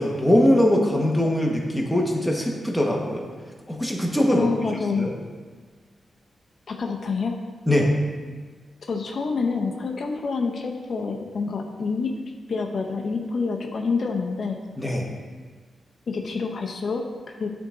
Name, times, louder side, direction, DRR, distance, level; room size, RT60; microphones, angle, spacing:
voice 1, 0.0-3.3 3.7-4.5 5.0-5.1 7.7-7.9 14.8-15.0, left 1 dB, ahead, -1 dB, 1.2 m, -21 dB
voice 2, 4.3-5.1 6.7-7.4 8.9-12.1 12.5-14.6 16.1-17.5, left 4 dB, 60° left, 2 dB, 0.6 m, -27 dB
8.7 x 3.6 x 3.8 m, 1.5 s
cardioid pair, 70°, 0 cm